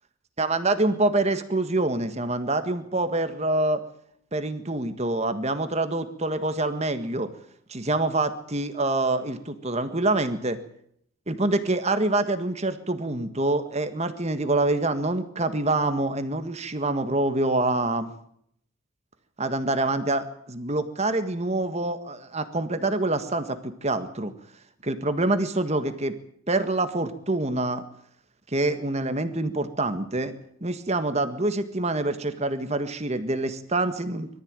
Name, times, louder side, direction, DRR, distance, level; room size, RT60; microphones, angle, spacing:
voice 1, 0.4-3.8 4.3-7.3 7.7-10.6 11.3-18.1 19.4-24.3 24.8-26.1 26.5-27.8 28.5-30.3 30.6-34.3, right 2 dB, 30° right, 10 dB, 1.6 m, -26 dB
23.0 x 14.0 x 8.9 m, 0.71 s
head